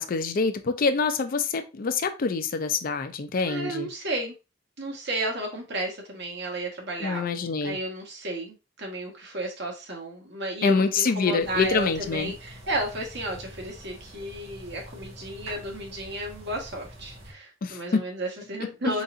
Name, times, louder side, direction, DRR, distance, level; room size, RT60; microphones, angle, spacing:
voice 1, 0.0-3.9 7.0-7.8 10.6-12.3 17.6-18.0 18.8-18.9, left 4 dB, 45° left, 0.4 m, -26 dB
voice 2, 3.5-4.3 4.8-7.2 7.6-19.0, right 1 dB, 60° right, 1.4 m, -33 dB
sound 1, 11.4-17.3, equal, 90° right, 1.6 m, -45 dB
4.0 x 3.8 x 2.5 m
head